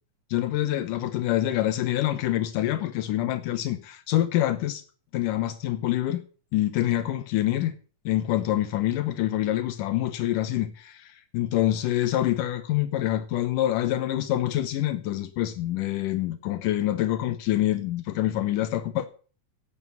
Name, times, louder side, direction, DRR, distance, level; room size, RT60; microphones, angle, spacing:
voice 1, 0.3-4.8 5.1-6.2 6.5-7.8 8.1-19.1, left 13 dB, 80° left, 2.5 m, -26 dB
11.5 x 8.4 x 7.0 m
omnidirectional pair, 3.7 m